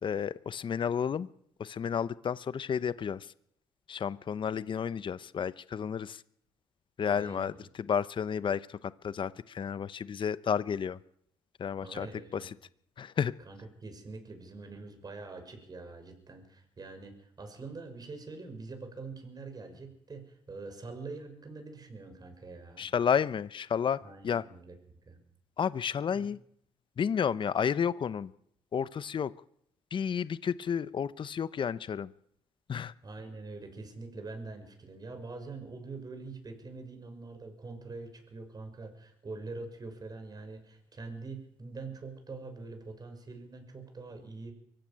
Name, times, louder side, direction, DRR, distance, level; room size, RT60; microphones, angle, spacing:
voice 1, 0.0-1.3 1.6-3.3 3.9-6.2 7.0-7.5 7.8-8.8 9.0-11.0 11.6-12.1 12.3-12.5 13.0-13.3 22.8-24.4 25.6-26.4 27.0-28.3 28.7-29.3 29.9-32.1 32.7-32.9, left 7 dB, 45° left, 16 dB, 0.9 m, -31 dB
voice 2, 7.0-7.5 11.8-12.5 13.4-22.9 24.0-24.7 25.1-25.2 26.1-26.2 30.2-30.3 33.0-44.5, right 3 dB, 35° right, 6 dB, 6.5 m, -44 dB
23.5 x 15.5 x 9.1 m, 0.71 s
cardioid pair, 75°, 11 cm